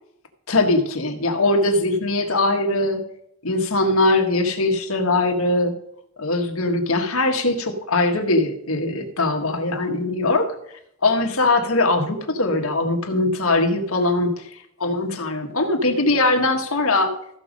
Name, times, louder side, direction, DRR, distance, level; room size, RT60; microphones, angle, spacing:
voice 1, 0.5-3.0 3.4-5.7 6.2-10.6 11.0-17.2, left 2 dB, 75° left, 4 dB, 1.6 m, -21 dB
14.5 x 6.2 x 5.2 m, 0.74 s
head